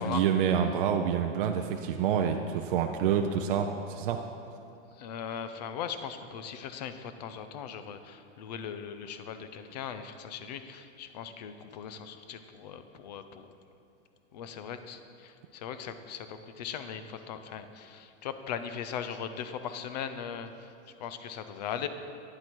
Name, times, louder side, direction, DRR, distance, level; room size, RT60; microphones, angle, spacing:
voice 1, 0.0-4.2, right 8 dB, 50° right, 4 dB, 0.4 m, -27 dB
voice 2, 4.9-13.5 14.3-20.7 21.0-21.9, left 8 dB, 35° left, 10 dB, 0.4 m, -39 dB
9.9 x 7.8 x 4.4 m, 2.7 s
supercardioid pair, 170°, 36 cm